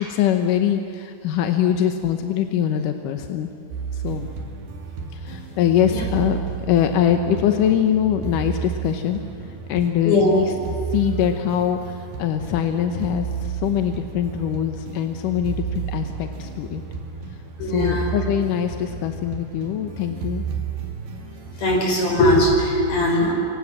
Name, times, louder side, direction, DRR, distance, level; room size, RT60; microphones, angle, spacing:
voice 1, 0.1-3.5 3.9-4.3 5.1-6.4 6.7-16.8 17.3-20.4, left 9 dB, 70° left, 6 dB, 2.1 m, -23 dB
sound 1, 3.7-21.8, right 6 dB, 70° right, 4.3 m, -32 dB
voice 2, 10.0-10.4 17.6-18.1 21.6-23.3, left 1 dB, 40° left, 1 dB, 5.8 m, -19 dB
29.0 x 26.0 x 7.5 m, 2.4 s
omnidirectional pair, 4.9 m